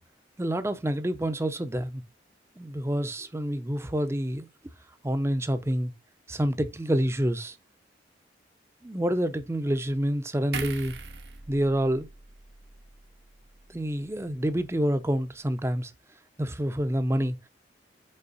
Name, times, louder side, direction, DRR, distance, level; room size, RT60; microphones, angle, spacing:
voice 1, 0.4-2.0 2.6-4.5 5.0-5.9 6.3-7.6 8.8-10.9 11.5-12.1 13.7-15.9 16.4-17.4, equal, 15° right, 0.5 m, -27 dB
sound 1, 10.5-13.9 14.2-14.4, right 5 dB, 70° right, 0.9 m, -41 dB
5.5 x 4.3 x 3.9 m
head